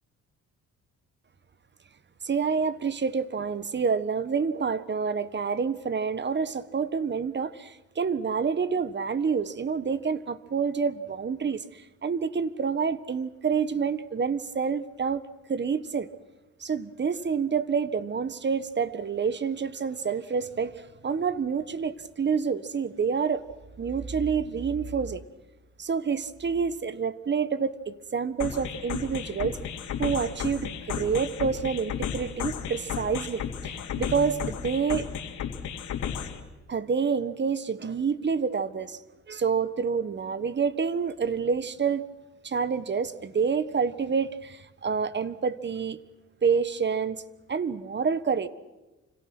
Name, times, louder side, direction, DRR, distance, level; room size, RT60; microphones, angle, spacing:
voice 1, 2.2-16.1 16.6-23.4 23.8-25.2 25.8-29.6 30.0-35.1 36.7-39.0 39.3-42.0 42.4-46.0 46.4-47.2 47.5-48.5, right 6 dB, 35° right, 15 dB, 1.4 m, -28 dB
sound 1, 28.4-36.4, left 8 dB, 75° left, 3.0 m, -34 dB
29.0 x 26.0 x 6.1 m, 1.1 s
cardioid pair, 90°, 30 cm